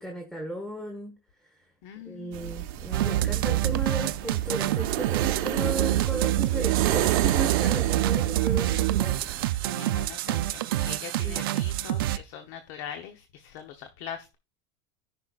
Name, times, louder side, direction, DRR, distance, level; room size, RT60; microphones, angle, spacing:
voice 1, 0.0-1.6 2.0-9.8 11.2-11.4, right 1 dB, 5° left, 1.4 m, -36 dB
voice 2, 1.8-2.6 9.7-14.4, left 8 dB, 60° left, 0.9 m, -42 dB
sound 1, 2.3-9.5, right 13 dB, 65° right, 1.0 m, -32 dB
sound 2, 2.9-12.2, right 14 dB, 90° right, 0.6 m, -26 dB
14.0 x 5.7 x 2.4 m
supercardioid pair, 145°, 11 cm